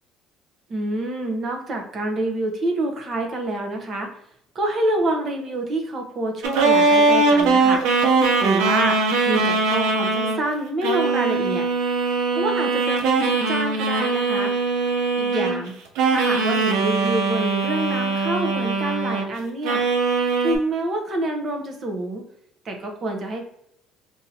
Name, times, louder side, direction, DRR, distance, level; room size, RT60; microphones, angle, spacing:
voice 1, 0.7-4.1 4.5-7.8 8.4-9.0 9.3-11.7 12.3-14.5 15.2-15.7 16.1-19.8 20.4-22.2 22.6-23.4, right 1 dB, 45° right, 3 dB, 0.9 m, -27 dB
sound 1, 6.4-10.4 10.8-15.7 16.0-19.3 19.6-20.6, right 3 dB, 85° right, 0.7 m, -21 dB
3.9 x 2.9 x 2.7 m, 0.75 s
cardioid pair, 100°, 0 cm